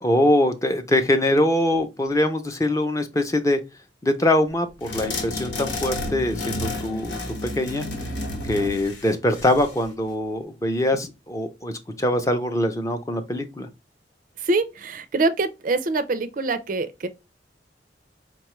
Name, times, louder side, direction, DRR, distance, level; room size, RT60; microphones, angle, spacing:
voice 1, 0.0-3.6 4.0-7.9 8.5-11.7 12.0-13.7, left 1 dB, 20° left, 0.5 m, -23 dB
sound 1, 4.8-9.9, left 2 dB, 80° left, 1.0 m, -31 dB
voice 2, 14.5-17.1, right 3 dB, 50° right, 0.4 m, -24 dB
4.7 x 2.3 x 3.0 m
head